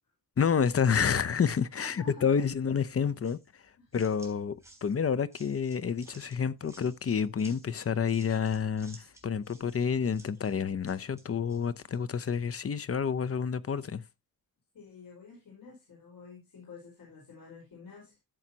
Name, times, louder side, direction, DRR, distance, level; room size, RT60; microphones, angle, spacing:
voice 1, 0.4-4.6 4.8-14.0, left 7 dB, 40° left, 0.6 m, -29 dB
voice 2, 1.8-2.4 3.8-4.0 14.7-18.2, left 4 dB, 70° left, 4.8 m, -50 dB
sound 1, 3.2-12.4, right 2 dB, 10° right, 3.3 m, -57 dB
13.5 x 7.2 x 2.8 m
wide cardioid pair, 120°, 35 cm